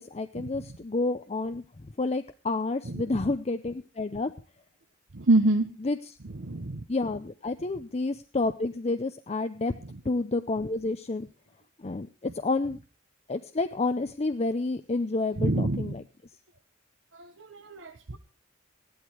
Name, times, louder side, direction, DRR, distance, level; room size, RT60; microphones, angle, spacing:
voice 1, 0.0-4.3 5.8-6.2 6.9-9.7 10.0-11.3 11.8-12.8 13.3-16.0, left 3 dB, 30° left, 9 dB, 0.6 m, -30 dB
voice 2, 5.1-5.7 6.4-6.8 15.4-15.9 17.5-18.2, right 2 dB, 65° right, 5 dB, 1.0 m, -25 dB
15.5 x 11.5 x 4.6 m, 0.36 s
head